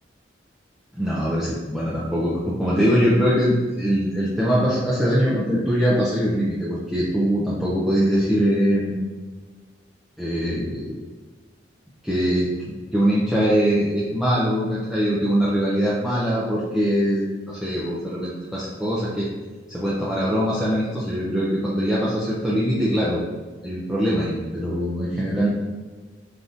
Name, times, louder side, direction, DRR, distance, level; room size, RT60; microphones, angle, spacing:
voice 1, 0.9-9.0 10.2-10.9 12.0-19.3 19.7-23.2 23.6-25.5, equal, ahead, -8 dB, 0.4 m, -22 dB
3.4 x 2.5 x 2.6 m, 1.4 s
head